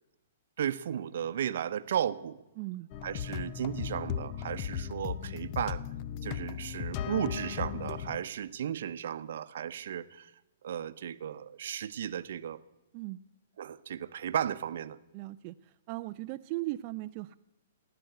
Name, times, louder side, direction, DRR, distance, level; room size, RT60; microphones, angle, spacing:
voice 1, 0.6-2.4 3.0-5.8 6.2-10.3 10.6-12.6 13.6-15.0, right 9 dB, 65° right, 0.8 m, -34 dB
voice 2, 2.6-2.9 12.9-13.2 15.1-17.4, right 19 dB, 40° right, 0.4 m, -38 dB
sound 1, 2.9-8.2, left 9 dB, 40° left, 0.7 m, -37 dB
17.0 x 10.0 x 7.9 m
hypercardioid pair, 130°, 0 cm